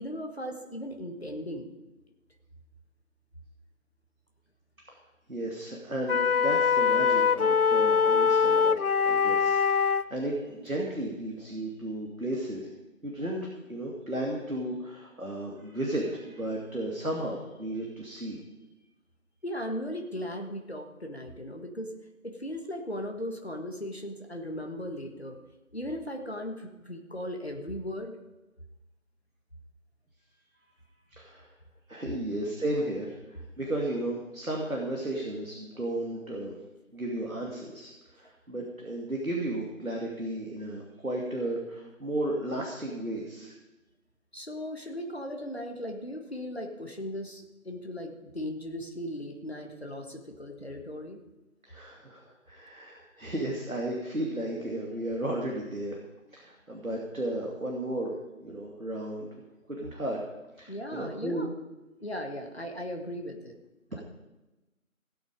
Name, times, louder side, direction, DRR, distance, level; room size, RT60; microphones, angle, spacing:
voice 1, 0.0-1.7 19.4-21.9 22.2-25.4 25.7-28.2 44.3-51.2 60.7-61.5 62.0-63.5 63.9-64.0, equal, 50° left, 2 dB, 1.6 m, -37 dB
voice 2, 5.3-12.7 13.0-18.4 31.1-31.5 31.9-36.6 36.9-43.6 51.7-56.0 56.3-59.3 59.7-60.2 60.6-61.5, right 1 dB, 80° right, -1 dB, 2.6 m, -34 dB
sound 1, 6.1-10.1, left 6 dB, 90° left, 0.6 m, -23 dB
16.5 x 8.3 x 5.1 m, 1.1 s
figure-of-eight pair, 180°, 42 cm